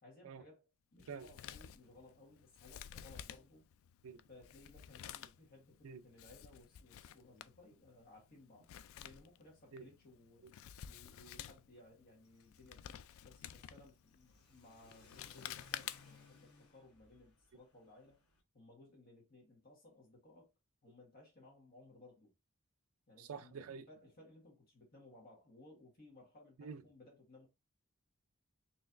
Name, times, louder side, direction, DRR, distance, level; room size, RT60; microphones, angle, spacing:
voice 1, 0.0-3.6 4.3-8.7 9.0-10.4 10.8-18.2 18.5-20.5 20.8-22.3 23.1-23.6 23.9-27.5, left 2 dB, 45° left, 1.6 m, -61 dB
Male speech man speaking, 1.0-16.3, left 10 dB, 65° left, 0.3 m, -52 dB
Car / Accelerating revving vroom, 12.2-18.4, left 4 dB, 80° left, 1.0 m, -65 dB
voice 2, 23.2-23.9 26.6-26.8, right 6 dB, 70° right, 0.4 m, -47 dB
4.2 x 3.1 x 2.5 m
head